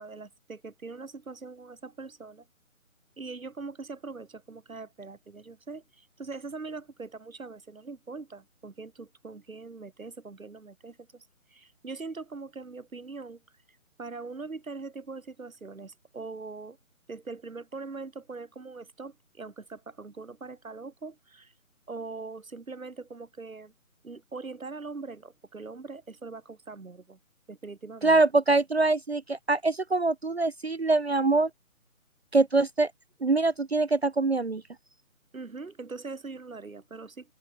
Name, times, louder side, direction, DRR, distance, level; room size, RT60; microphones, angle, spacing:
voice 1, 0.0-2.4 3.2-11.2 11.5-13.4 14.0-16.8 17.1-21.5 21.9-23.7 24.0-27.2 27.5-28.2 35.3-37.3, right 4 dB, 70° right, 2.8 m, -42 dB
voice 2, 28.0-31.5 32.3-32.9 33.2-34.6, right 3 dB, 50° right, 0.5 m, -24 dB
open air
figure-of-eight pair, 170°, 42 cm